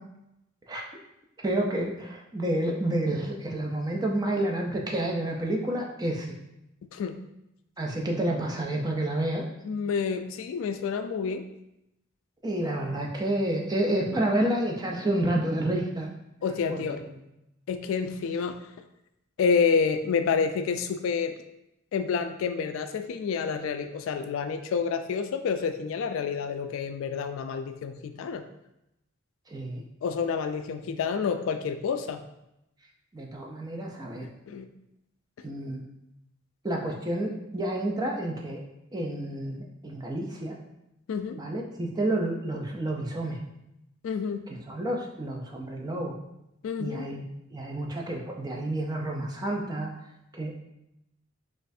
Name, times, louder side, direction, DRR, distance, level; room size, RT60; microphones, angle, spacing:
voice 1, 1.4-6.3 7.8-9.4 12.4-16.1 16.7-17.2 29.5-29.8 33.1-34.3 35.4-35.8 36.6-38.6 38.9-40.5 41.4-43.4 44.5-46.1 46.8-47.3 47.5-49.9 50.3-50.6, right 1 dB, 20° right, 0 dB, 0.5 m, -29 dB
voice 2, 9.6-11.4 16.4-17.0 17.7-18.6 19.4-21.3 21.9-28.4 30.0-32.2 34.2-34.7 41.1-41.4 44.0-44.5 46.6-47.1, left 6 dB, 70° left, 10 dB, 0.3 m, -28 dB
4.1 x 2.4 x 2.6 m, 0.86 s
head